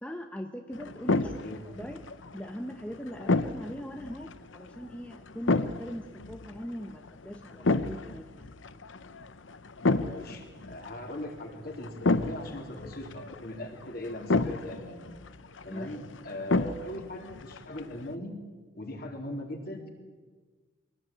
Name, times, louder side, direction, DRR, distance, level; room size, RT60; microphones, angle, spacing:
voice 1, 0.0-2.1 2.3-8.5 15.7-16.0, equal, 5° left, 5 dB, 0.9 m, -40 dB
sound 1, 0.7-18.1, left 3 dB, 70° left, 0.9 m, -32 dB
voice 2, 1.2-1.6 10.0-15.1 15.6-18.4 18.8-19.9, left 1 dB, 50° left, 2 dB, 3.9 m, -40 dB
23.5 x 18.0 x 9.1 m, 1.4 s
head